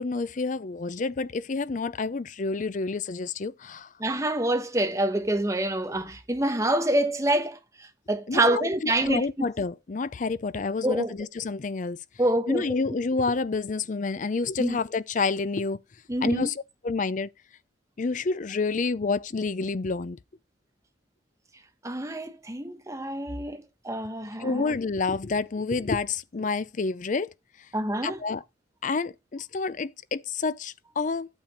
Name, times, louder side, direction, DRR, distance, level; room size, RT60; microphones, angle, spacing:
voice 1, 0.0-3.9 8.3-12.0 12.5-15.8 16.2-17.3 18.0-20.2 24.4-27.3 28.0-28.4 28.8-31.3, left 4 dB, 45° left, 0.5 m, -29 dB
voice 2, 4.0-9.3 10.8-11.1 12.2-12.7 14.6-14.8 16.1-16.5 21.8-24.7 27.7-28.2, right 1 dB, 15° right, 1.1 m, -27 dB
9.0 x 6.7 x 4.2 m
head